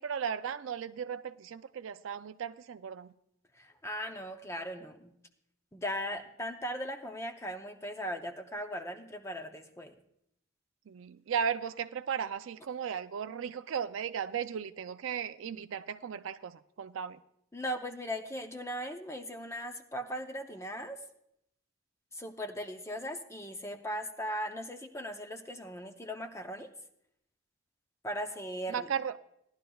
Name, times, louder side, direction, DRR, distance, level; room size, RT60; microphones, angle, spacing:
voice 1, 0.0-3.1 10.9-17.2 28.7-29.1, right 7 dB, 65° right, 12 dB, 0.4 m, -36 dB
voice 2, 3.5-5.1 5.7-9.9 17.5-21.0 22.1-26.7 28.0-28.9, equal, 15° left, 6 dB, 0.7 m, -38 dB
17.0 x 11.5 x 2.3 m, 0.75 s
head